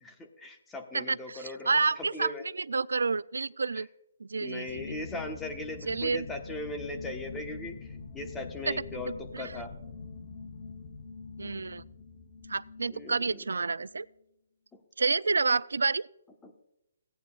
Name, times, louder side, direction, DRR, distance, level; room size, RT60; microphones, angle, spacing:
voice 1, 0.0-2.4 3.8-3.9 4.4-7.8 8.1-9.7 12.9-13.4 16.4-16.5, left 2 dB, 10° left, 3 dB, 1.2 m, -39 dB
voice 2, 0.9-3.9 4.2-4.9 5.9-6.3 8.7-9.0 9.3-9.5 11.4-11.8 12.5-14.1 15.0-16.1, right 4 dB, 90° right, 20 dB, 0.3 m, -29 dB
sound 1, 4.7-14.1, left 4 dB, 40° left, 1.0 m, -44 dB
17.0 x 9.3 x 2.4 m, 0.87 s
hypercardioid pair, 155°, 0 cm